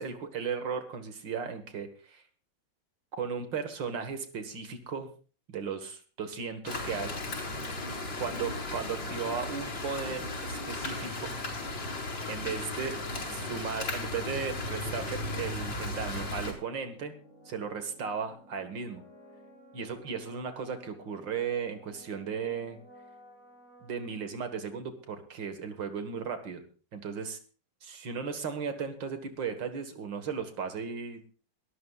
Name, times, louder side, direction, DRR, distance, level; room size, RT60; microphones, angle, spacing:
voice 1, 0.0-2.2 3.2-5.1 5.5-7.1 8.2-11.4 12.3-13.0 13.3-17.1 17.5-19.0 19.7-22.8 23.8-26.6 26.9-27.4 27.8-31.2, right 6 dB, 70° right, 8 dB, 2.3 m, -36 dB
sound 1, 6.6-16.5, left 2 dB, 75° left, 5.2 m, -36 dB
sound 2, 7.2-24.8, equal, 45° right, 7.0 m, -56 dB
22.5 x 14.0 x 2.4 m, 0.39 s
omnidirectional pair, 2.1 m